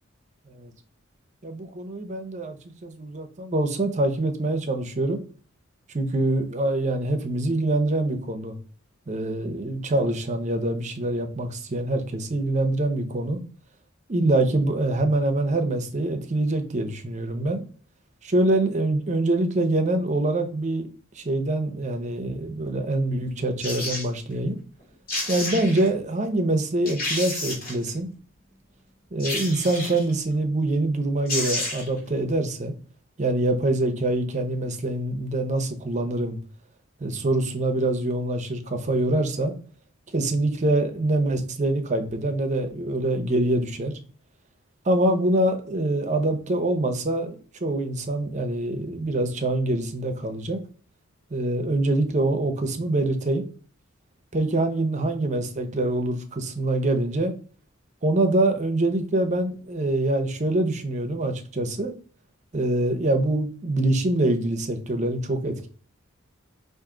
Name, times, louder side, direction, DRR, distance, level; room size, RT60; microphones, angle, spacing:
voice 1, 1.4-2.6 2.8-5.2 5.9-8.6 9.1-13.4 14.1-17.6 18.2-20.9 21.1-24.6 25.3-28.1 29.1-32.7 33.2-36.4 37.0-39.5 40.1-44.0 44.8-50.6 51.3-53.4 54.3-57.3 58.0-61.9 62.5-65.7, right 2 dB, 35° right, 0.6 m, -25 dB
sound 1, 23.6-24.1 24.8-24.9 25.1-25.9 26.4-26.5 26.9-27.9 29.2-30.1 30.9-31.0 31.3-32.0 32.3-32.4, left 1 dB, 45° left, 1.9 m, -30 dB
4.8 x 2.6 x 3.7 m
head